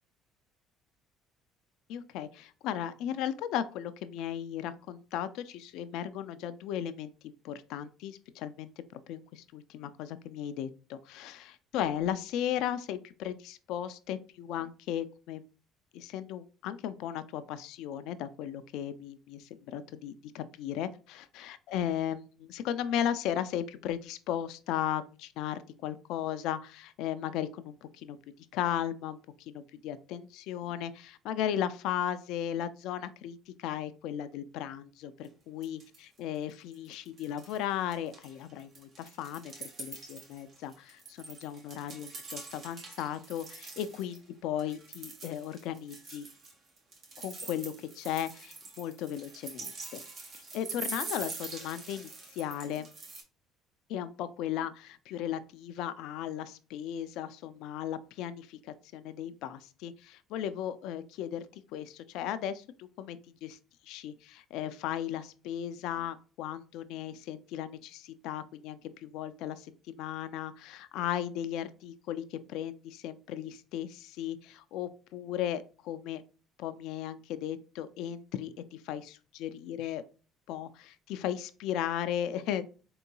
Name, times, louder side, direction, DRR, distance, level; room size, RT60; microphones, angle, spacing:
voice 1, 1.9-15.4 15.9-20.9 21.1-28.2 28.5-35.8 36.2-46.3 47.2-52.9 53.9-63.6 63.8-76.2 76.6-80.0 80.5-82.6, left 10 dB, 70° left, 12 dB, 0.3 m, -36 dB
sound 1, 35.2-35.3 35.6-36.2 36.5-37.6 37.9-44.2 44.6-53.2, right 3 dB, 55° right, 1.4 m, -44 dB
3.8 x 3.7 x 2.2 m, 0.36 s
hypercardioid pair, 65°, 0 cm